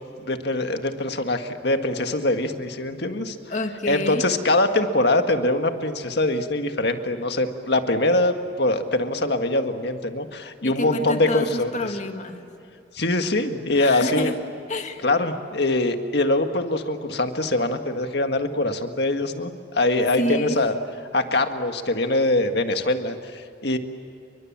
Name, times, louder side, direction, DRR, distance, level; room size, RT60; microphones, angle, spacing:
voice 1, 0.2-3.4 3.9-11.7 12.9-14.3 15.0-20.7 21.1-23.8, left 2 dB, 60° left, 6 dB, 1.8 m, -23 dB
voice 2, 3.5-4.3 10.6-12.5 13.8-14.4 14.7-15.0 20.2-20.6, left 1 dB, 40° left, 5 dB, 2.0 m, -28 dB
29.5 x 23.5 x 7.5 m, 2.6 s
head